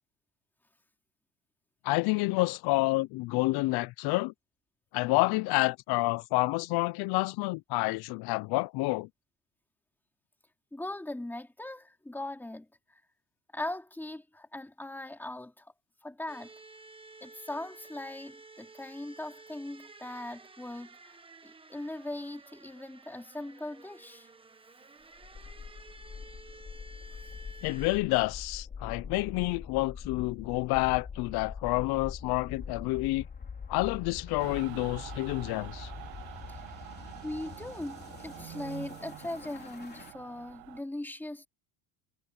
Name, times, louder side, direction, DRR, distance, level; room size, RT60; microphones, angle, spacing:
voice 1, 1.8-4.3 4.9-9.1 27.6-33.3 33.7-35.9, left 22 dB, 60° left, 0.6 m, -29 dB
voice 2, 10.7-13.0 13.5-15.7 16.0-16.5 17.2-21.2 21.4-24.3 36.5-36.6 37.2-41.5, left 1 dB, 5° left, 3.0 m, -40 dB
sound 1, 16.3-28.0, right 3 dB, 10° right, 1.2 m, -53 dB
sound 2, 25.2-40.1, left 6 dB, 20° left, 3.4 m, -44 dB
Mechanical fan, 34.4-40.8, right 22 dB, 85° right, 1.0 m, -46 dB
cardioid pair, 165°, 43 cm